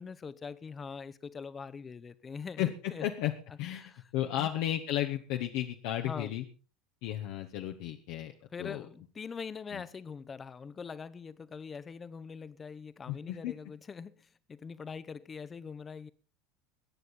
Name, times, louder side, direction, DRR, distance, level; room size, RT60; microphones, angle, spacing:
voice 1, 0.0-3.1 3.7-4.0 4.4-4.5 6.0-6.3 8.5-16.1, left 5 dB, 25° left, 0.9 m, -43 dB
voice 2, 3.0-3.3 3.6-6.4 7.0-8.3 8.6-8.8 9.7-9.8 13.1-13.5, left 13 dB, 55° left, 1.1 m, -33 dB
22.0 x 9.5 x 4.1 m
figure-of-eight pair, 70°, 0 cm